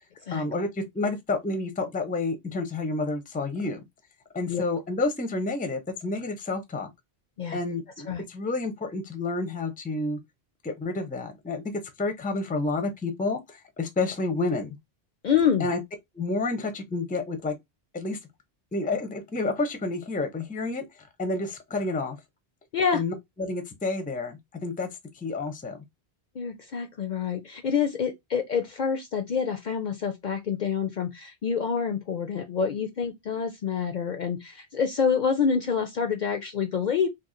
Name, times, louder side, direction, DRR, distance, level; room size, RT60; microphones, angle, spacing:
voice 1, 0.3-3.8 4.3-6.9 7.5-10.2 10.6-11.7 12.0-14.8 15.6-15.8 16.1-17.5 17.9-18.2 18.7-20.8 21.2-22.2 22.9-24.9 25.1-25.8, left 3 dB, 10° left, 0.4 m, -29 dB
voice 2, 15.2-15.7 22.7-23.0 26.4-37.1, left 6 dB, 55° left, 0.6 m, -27 dB
2.9 x 2.3 x 3.7 m
omnidirectional pair, 1.1 m